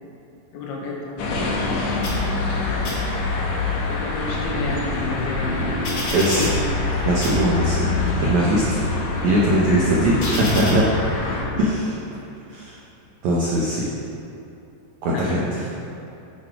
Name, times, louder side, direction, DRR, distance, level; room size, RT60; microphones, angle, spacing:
voice 1, 0.5-1.8 2.4-3.4 3.9-5.8 6.1-6.6 7.8-8.2 8.5-8.6 9.7-10.0 11.2-11.7 15.1-15.7, left 3 dB, 70° left, -2 dB, 3.0 m, -31 dB
sound 1, 1.2-11.4, left 2 dB, 90° left, 1.5 m, -27 dB
sound 2, 2.0-2.6 2.8-3.6 4.1-6.9 7.2-7.9 8.5-10.7, left 2 dB, 45° left, 2.9 m, -29 dB
voice 2, 6.1-6.5 7.0-7.9 8.2-8.6 9.2-10.9 11.6-11.9 12.5-12.8 13.2-13.9 15.0-15.7, right 1 dB, 90° right, -4 dB, 1.6 m, -20 dB
10.0 x 7.5 x 4.8 m, 2.8 s
omnidirectional pair, 4.9 m